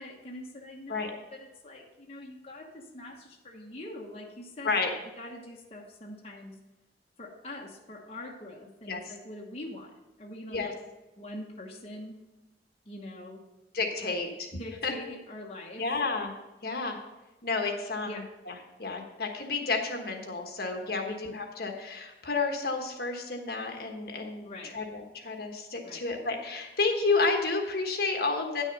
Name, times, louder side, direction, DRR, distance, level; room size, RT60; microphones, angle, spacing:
voice 1, 0.0-4.7 5.2-6.6 7.2-9.9 10.2-10.7 11.2-12.2 12.8-13.4 14.0-14.2 14.6-15.8 18.0-18.2 21.0-21.1 24.4-24.7 25.8-26.0, left 1 dB, 35° left, -2 dB, 1.2 m, -43 dB
voice 2, 13.7-14.5 14.8-14.9 15.8-16.3 16.6-17.0 17.4-18.5 18.8-28.6, left 3 dB, 60° left, 3 dB, 1.3 m, -31 dB
9.8 x 6.3 x 5.3 m, 1.1 s
head